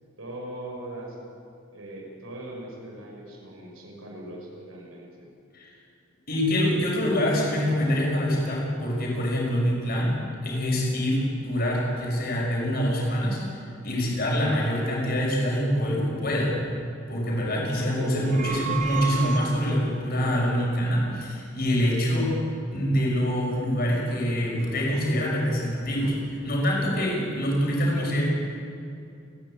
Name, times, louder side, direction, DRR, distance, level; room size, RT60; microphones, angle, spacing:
voice 1, 0.2-1.2 1.7-5.3 17.8-18.7, right 1 dB, 85° right, -2 dB, 6.6 m, -38 dB
voice 2, 6.3-10.1 10.4-13.4 13.8-16.6 17.1-22.3 22.7-28.2, equal, 50° left, -2 dB, 6.0 m, -25 dB
sound 1, 18.1-20.0, right 6 dB, 35° right, 1.3 m, -32 dB
29.0 x 11.0 x 8.8 m, 2.6 s
head